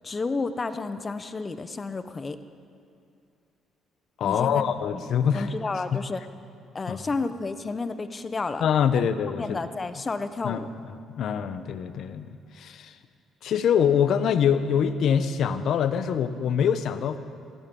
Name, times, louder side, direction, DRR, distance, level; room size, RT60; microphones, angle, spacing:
voice 1, 0.0-2.4 4.2-4.6 5.0-6.2 6.7-8.6 9.4-10.7, left 3 dB, 30° left, 11 dB, 0.9 m, -31 dB
voice 2, 4.2-5.5 5.9-6.0 6.9-7.0 8.6-9.6 10.4-10.6 11.2-13.0 13.4-17.2, left 8 dB, 65° left, 11 dB, 0.9 m, -24 dB
17.0 x 15.5 x 5.4 m, 2.5 s
supercardioid pair, 80°, 0 cm